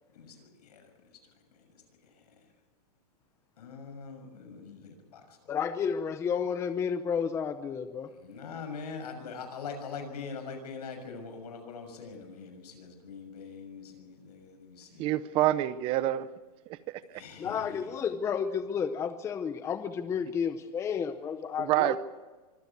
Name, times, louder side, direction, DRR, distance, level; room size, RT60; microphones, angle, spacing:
voice 1, 0.1-0.9 3.6-5.6 8.1-15.1 17.1-17.9, left 5 dB, 80° left, 6.5 m, -43 dB
voice 2, 5.5-8.1 17.4-22.0, left 7 dB, 15° left, 0.8 m, -31 dB
voice 3, 15.0-16.3 16.7-17.2 21.6-22.0, right 14 dB, 25° right, 0.7 m, -27 dB
24.5 x 15.0 x 8.3 m
supercardioid pair, 160°, 20 cm